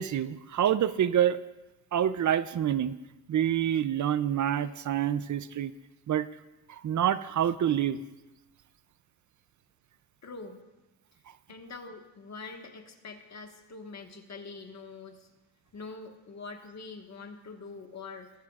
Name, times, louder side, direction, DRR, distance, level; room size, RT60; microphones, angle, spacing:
voice 1, 0.0-1.4 1.9-2.9 3.3-5.7 6.1-6.3 6.7-8.0, right 10 dB, 50° right, 15 dB, 0.5 m, -27 dB
voice 2, 10.2-10.6 11.5-15.3 15.7-18.3, left 4 dB, 40° left, 3 dB, 1.5 m, -44 dB
21.5 x 12.5 x 2.4 m, 1.1 s
cardioid pair, 130°, 40 cm